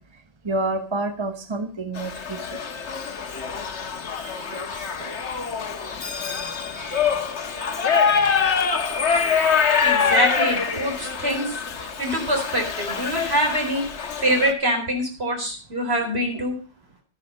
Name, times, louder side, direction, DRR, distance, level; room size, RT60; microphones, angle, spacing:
voice 1, 0.0-2.6 4.1-5.3 6.3-6.5 8.1-8.5 10.7-10.9 16.3-16.4, right 2 dB, 25° right, 7 dB, 1.1 m, -31 dB
Shout / Livestock farm animals working animals, 2.0-14.5, left 6 dB, 75° left, 1.5 m, -25 dB
voice 2, 9.8-11.5 12.0-13.8 14.2-16.6, equal, 60° right, 2 dB, 4.6 m, -24 dB
12.0 x 10.5 x 5.3 m, 0.35 s
omnidirectional pair, 1.2 m